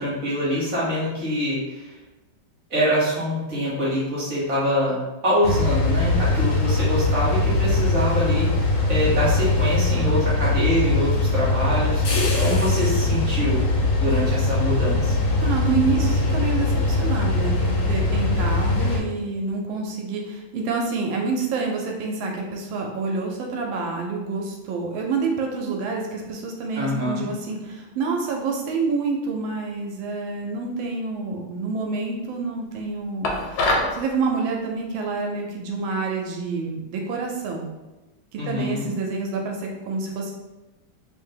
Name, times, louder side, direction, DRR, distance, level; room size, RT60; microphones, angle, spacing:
voice 1, 0.0-1.9 2.7-13.6 14.0-15.2 26.8-27.3 38.4-38.9, equal, 50° right, -7 dB, 1.3 m, -25 dB
sound 1, 5.4-19.0, left 2 dB, 70° left, 1.3 m, -21 dB
voice 2, 15.4-37.7 38.3-40.3, right 4 dB, 85° right, 1 dB, 1.4 m, -28 dB
sound 2, 33.2-34.0, left 2 dB, 90° left, 1.4 m, -23 dB
3.3 x 2.7 x 3.7 m, 1.1 s
omnidirectional pair, 2.1 m